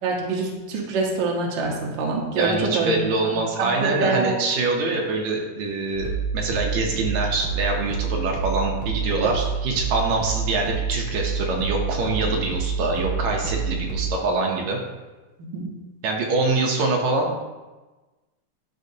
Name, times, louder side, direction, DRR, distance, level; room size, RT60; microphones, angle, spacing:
voice 1, 0.0-2.9 3.2-4.3 15.4-15.7, right 3 dB, 55° right, -1 dB, 1.4 m, -25 dB
voice 2, 2.3-14.8 16.0-17.4, right 3 dB, 75° right, 0 dB, 2.0 m, -24 dB
sound 1, 5.9-14.1, right 6 dB, 5° right, 1.8 m, -28 dB
12.0 x 4.1 x 2.8 m, 1.2 s
omnidirectional pair, 3.3 m